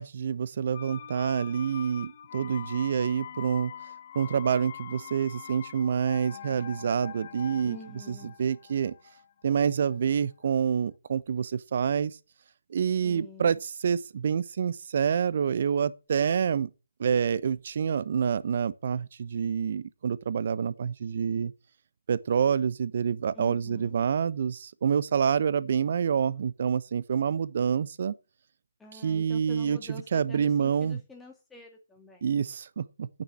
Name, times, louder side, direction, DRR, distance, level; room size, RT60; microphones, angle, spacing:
voice 1, 0.0-3.7 4.1-7.8 8.1-8.9 9.4-12.2 12.7-16.7 17.0-21.5 22.1-28.1 28.9-29.8 30.1-31.0 32.2-33.1, right 7 dB, 50° right, 1.0 m, -27 dB
sound 1, 0.7-10.4 10.7-10.8, left 9 dB, 40° left, 0.9 m, -44 dB
voice 2, 7.6-8.3 13.0-13.6 23.3-23.9 28.8-32.2, left 3 dB, 5° left, 2.2 m, -47 dB
9.0 x 7.5 x 8.2 m
figure-of-eight pair, 145°, 0 cm